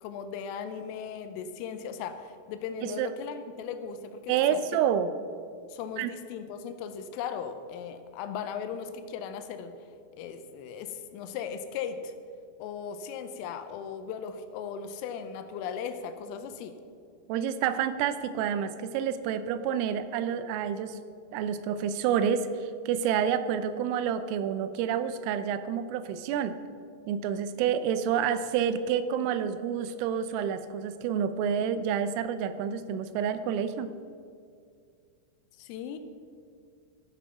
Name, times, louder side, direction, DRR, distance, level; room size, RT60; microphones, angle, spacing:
voice 1, 0.0-4.6 5.7-9.7 10.2-12.1 12.6-16.8 35.6-36.0, left 7 dB, 85° left, 9 dB, 3.4 m, -37 dB
voice 2, 4.3-5.1 6.0-6.1 17.3-21.0 21.3-26.6 27.1-33.9, right 8 dB, 85° right, 12 dB, 3.2 m, -28 dB
13.5 x 8.3 x 5.8 m, 2.3 s
omnidirectional pair, 5.8 m